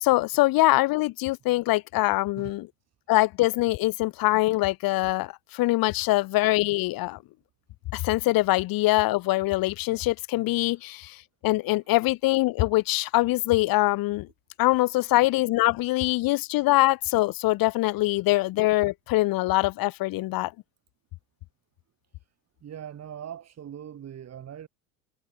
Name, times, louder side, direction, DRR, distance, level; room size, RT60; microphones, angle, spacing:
voice 1, 0.0-2.7 3.1-7.2 7.9-11.2 11.4-14.3 14.6-20.5, left 19 dB, 50° left, 1.4 m, -23 dB
voice 2, 22.6-24.7, right 9 dB, 35° right, 4.2 m, -40 dB
supercardioid pair, 100°, 45 cm